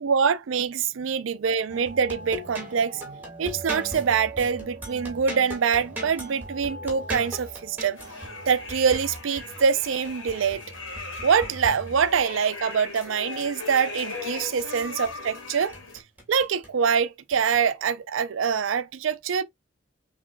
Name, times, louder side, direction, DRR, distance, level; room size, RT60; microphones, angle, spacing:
voice 1, 0.0-8.0 8.5-10.6 11.2-15.7 16.3-19.4, right 6 dB, 85° right, 0.4 m, -25 dB
sound 1, 1.7-12.4 14.1-15.4 15.7-16.8 17.3-17.6, right 1 dB, 10° right, 1.7 m, -39 dB
sound 2, 8.0-16.0, left 3 dB, 80° left, 1.7 m, -38 dB
5.9 x 3.0 x 2.2 m
head